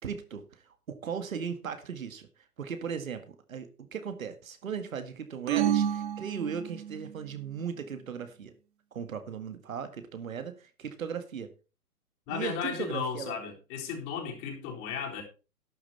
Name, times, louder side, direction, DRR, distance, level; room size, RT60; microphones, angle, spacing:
voice 1, 0.0-2.3 2.6-8.5 8.9-11.5 12.3-13.4, right 7 dB, 60° right, 9 dB, 2.0 m, -37 dB
sound 1, 5.5-7.1, right 10 dB, 35° right, 1.2 m, -29 dB
voice 2, 12.3-15.2, left 6 dB, 30° left, 1 dB, 3.9 m, -35 dB
12.0 x 10.0 x 4.3 m, 0.33 s
figure-of-eight pair, 130°, 45 cm